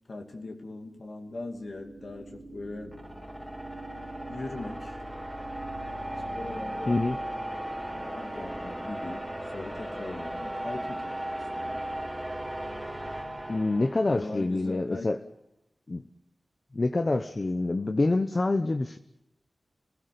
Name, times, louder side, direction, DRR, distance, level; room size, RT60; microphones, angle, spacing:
voice 1, 0.1-3.0 4.3-5.0 6.3-7.0 8.1-11.9 14.1-15.1, left 2 dB, 60° left, 2 dB, 2.6 m, -40 dB
sound 1, 1.3-14.4, right 1 dB, 10° right, 4.1 m, -37 dB
voice 2, 13.5-15.2 15.9-16.0 16.7-19.0, left 2 dB, 40° left, 8 dB, 0.9 m, -26 dB
29.0 x 17.0 x 6.8 m, 0.87 s
wide cardioid pair, 100°, 0 cm